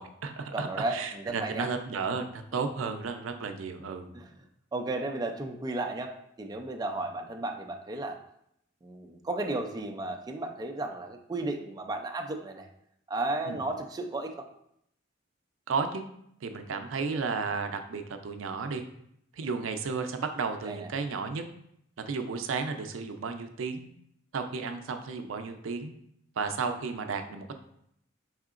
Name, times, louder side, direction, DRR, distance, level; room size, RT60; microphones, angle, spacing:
voice 1, 0.0-4.1 13.5-13.6 15.7-16.0 16.4-18.8 19.3-21.4 22.1-23.9 24.3-25.9 26.4-27.5, right 5 dB, 90° right, 7 dB, 0.4 m, -33 dB
voice 2, 0.5-1.7 4.1-4.3 4.7-6.1 6.4-8.2 8.8-12.7 13.1-14.5 20.7-20.9, right 2 dB, 20° right, 4 dB, 0.3 m, -34 dB
4.8 x 3.6 x 2.4 m, 0.73 s
head